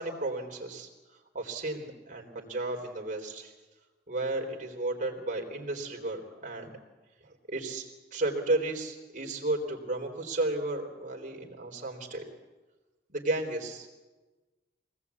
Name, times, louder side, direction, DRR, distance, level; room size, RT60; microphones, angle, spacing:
voice 1, 0.0-3.5 4.1-6.8 7.2-7.8 8.1-12.2 13.1-13.9, right 2 dB, 45° right, 2 dB, 3.7 m, -33 dB
24.5 x 18.5 x 8.4 m, 1.2 s
head